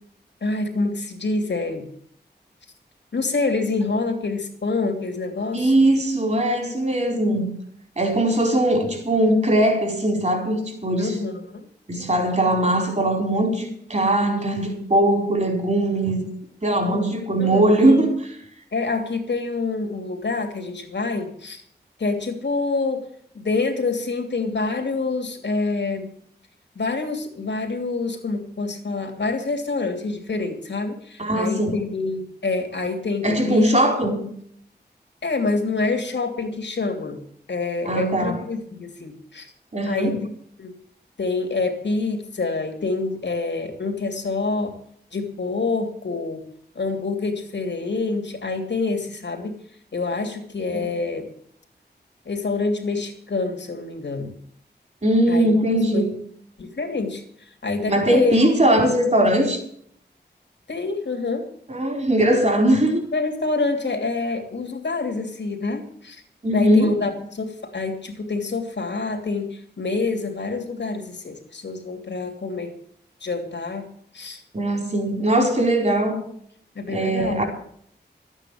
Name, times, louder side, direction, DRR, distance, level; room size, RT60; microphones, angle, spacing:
voice 1, 0.4-1.9 3.1-5.9 11.0-11.7 16.8-17.0 17.4-18.1 18.7-21.6 22.0-23.0 23.3-26.1 26.7-33.7 35.2-37.2 37.5-39.5 39.9-40.2 40.6-40.7 41.2-44.7 45.1-46.4 46.7-49.5 49.9-51.2 52.2-54.3 55.3-55.5 55.9-56.1 56.6-57.2 57.6-58.4 60.7-61.4 63.1-66.2 66.5-72.7 73.2-73.9 74.1-74.4 76.7-77.4, left 3 dB, 80° left, 2.9 m, -26 dB
voice 2, 5.5-7.5 8.0-11.2 11.9-16.2 16.6-18.1 31.2-31.8 33.2-34.3 37.8-38.4 39.7-40.2 50.7-50.9 55.0-56.1 57.9-59.6 61.7-63.0 66.4-66.9 74.5-76.2 76.9-77.4, right 1 dB, 40° right, 4.5 m, -20 dB
13.0 x 9.1 x 8.6 m
wide cardioid pair, 95°, 18 cm